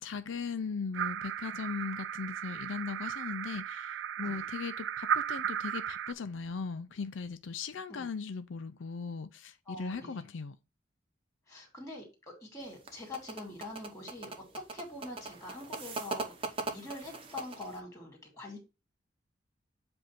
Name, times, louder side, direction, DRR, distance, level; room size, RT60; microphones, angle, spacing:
voice 1, 0.0-10.6, left 5 dB, 85° left, 0.5 m, -38 dB
sound 1, 0.9-6.1, right 9 dB, 75° right, 0.3 m, -35 dB
voice 2, 9.7-10.2 11.5-14.3 14.7-18.6, left 2 dB, 15° left, 2.4 m, -45 dB
sound 2, 12.6-17.8, right 3 dB, 30° right, 0.8 m, -40 dB
7.6 x 2.6 x 5.7 m
head